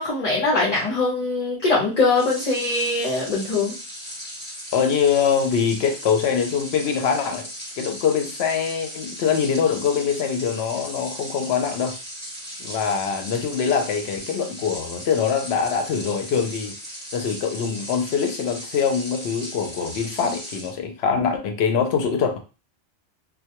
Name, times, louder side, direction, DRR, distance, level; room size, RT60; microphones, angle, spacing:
voice 1, 0.0-3.7, left 3 dB, 45° left, -5 dB, 0.7 m, -22 dB
sound 1, 2.1-20.7, equal, 10° left, 1.0 m, -37 dB
voice 2, 4.7-7.5 7.8-12.0 12.6-16.8 17.1-22.4, left 6 dB, 75° left, 5 dB, 0.8 m, -23 dB
2.2 x 2.2 x 2.8 m, 0.32 s
omnidirectional pair, 1.1 m